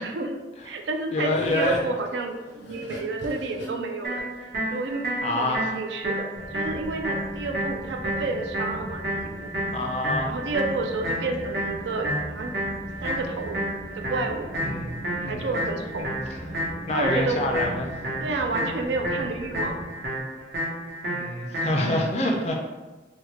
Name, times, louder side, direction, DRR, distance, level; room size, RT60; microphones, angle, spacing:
voice 1, 0.0-9.5 10.2-12.5 13.0-13.6 13.9-14.5 15.2-16.1 16.9-17.4 18.2-19.8, right 3 dB, 70° right, 3 dB, 0.4 m, -30 dB
sound 1, 0.6-5.8, left 2 dB, 80° left, 0.6 m, -39 dB
voice 2, 1.1-1.8 5.2-5.7 9.7-10.3 14.6-15.0 15.2-15.5 16.0-16.1 16.9-17.9 21.1-22.5, left 1 dB, 35° left, 1 dB, 0.3 m, -26 dB
sound 2, 4.0-22.0, right 1 dB, 55° right, 0.9 m, -31 dB
sound 3, 6.4-19.8, equal, 10° right, 0.6 m, -39 dB
3.5 x 2.2 x 3.1 m, 1.2 s
head